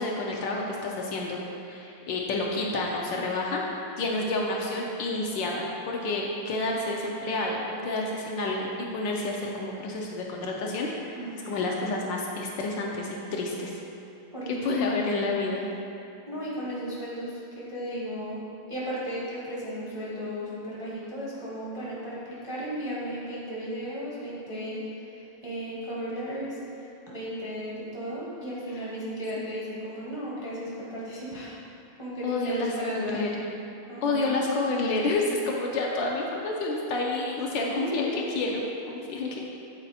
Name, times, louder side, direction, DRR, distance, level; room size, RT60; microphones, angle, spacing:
voice 1, 0.0-3.6 4.0-13.7 14.6-15.6 29.4-29.5 32.2-33.3 34.0-39.4, left 2 dB, 75° left, -1 dB, 1.2 m, -29 dB
voice 2, 11.2-11.5 14.3-15.0 16.3-18.4 18.7-31.6 32.0-33.4 33.9-34.3 37.5-38.5, equal, 25° right, -7 dB, 0.6 m, -35 dB
8.0 x 4.1 x 4.1 m, 2.7 s
omnidirectional pair, 2.3 m